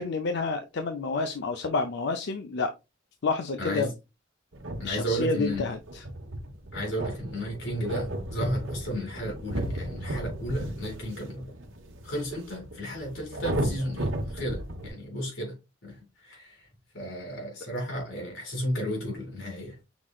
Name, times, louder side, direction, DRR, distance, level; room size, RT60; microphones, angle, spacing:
voice 1, 0.0-2.7 3.2-3.9 4.8-6.0, left 4 dB, 65° left, 0.5 m, -29 dB
voice 2, 3.6-3.9 4.8-5.6 6.7-11.4 12.0-15.6 15.8-16.7 16.9-19.8, equal, 90° left, 2.6 m, -33 dB
sound 1, 4.5-14.9, right 1 dB, 85° right, 0.9 m, -35 dB
5.9 x 3.7 x 2.3 m
head